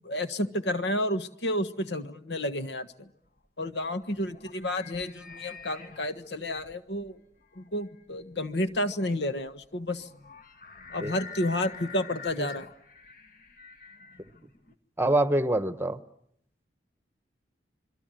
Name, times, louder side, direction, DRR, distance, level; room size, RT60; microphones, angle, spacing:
voice 1, 0.0-3.1 3.6-7.2 7.6-10.1 10.9-12.7, left 1 dB, 75° left, 10 dB, 1.5 m, -31 dB
sound 1, 3.3-14.7, left 5 dB, 50° left, 1.6 m, -47 dB
voice 2, 15.0-16.0, right 1 dB, 15° right, 12 dB, 1.0 m, -25 dB
26.5 x 23.0 x 9.1 m, 0.73 s
head